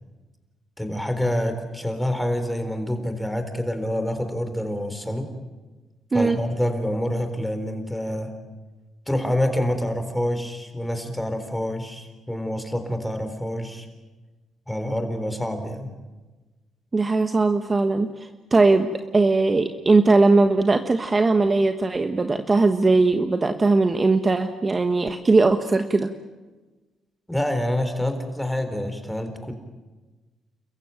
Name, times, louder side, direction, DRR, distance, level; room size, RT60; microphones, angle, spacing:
voice 1, 0.8-5.3 6.1-8.3 9.1-13.9 14.7-15.9 27.3-29.5, left 1 dB, 5° left, 7 dB, 3.9 m, -27 dB
voice 2, 16.9-26.1, right 3 dB, 25° right, 7 dB, 1.3 m, -19 dB
30.0 x 15.0 x 9.2 m, 1.2 s
cardioid pair, 90°, 0 cm